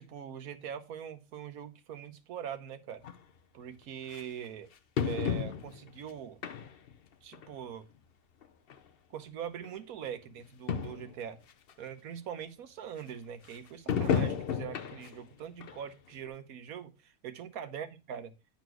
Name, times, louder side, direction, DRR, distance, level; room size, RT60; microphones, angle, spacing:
voice 1, 0.0-3.0 3.5-4.7 5.0-6.4 7.2-7.9 9.1-11.4 11.8-18.3, right 8 dB, 70° right, 9 dB, 1.3 m, -42 dB
sound 1, 3.0-3.1 4.1-4.2 5.0-5.9 6.4-6.9 7.3-7.5 8.4-8.5 8.7-8.8 9.6-9.7 10.0-10.1 10.4-10.5 10.7-11.1 11.7-11.8 13.9-15.2 15.6-15.8 16.3-16.4, left 7 dB, 55° left, 0.6 m, -32 dB
9.4 x 4.4 x 4.5 m, 0.29 s
omnidirectional pair, 1.6 m